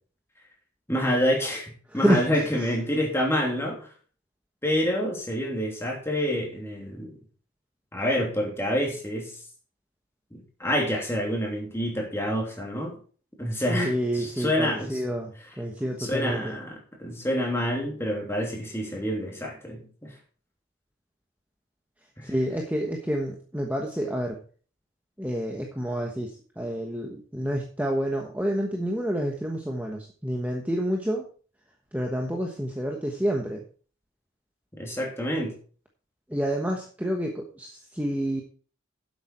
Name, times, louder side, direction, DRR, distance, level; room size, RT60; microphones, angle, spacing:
voice 1, 0.9-3.9 4.6-7.1 7.9-9.4 10.3-13.0 13.4-15.0 16.0-20.1 22.2-22.3 34.7-35.6, equal, 10° left, -1 dB, 3.0 m, -28 dB
voice 2, 1.9-2.7 13.7-15.3 15.6-16.5 22.2-24.4 25.2-31.3 31.9-33.6 36.3-38.4, equal, 10° right, 1 dB, 1.2 m, -28 dB
11.0 x 8.0 x 4.4 m, 0.41 s
head